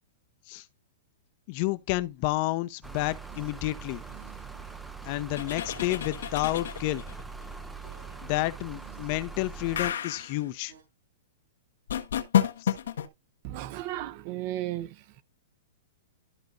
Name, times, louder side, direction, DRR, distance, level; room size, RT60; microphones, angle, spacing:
voice 1, 1.5-4.0 5.0-7.0 8.2-10.7 12.6-12.7, left 18 dB, 40° left, 0.7 m, -30 dB
sound 1, 2.8-9.9, right 4 dB, 5° right, 0.5 m, -42 dB
sound 2, 3.3-10.8, right 7 dB, 85° right, 4.2 m, -56 dB
sound 3, 5.3-7.2 9.8-10.4 11.9-13.1, left 9 dB, 85° left, 1.3 m, -29 dB
voice 2, 13.4-14.9, right 14 dB, 40° right, 0.7 m, -34 dB
13.0 x 5.2 x 2.5 m
hypercardioid pair, 150°, 0 cm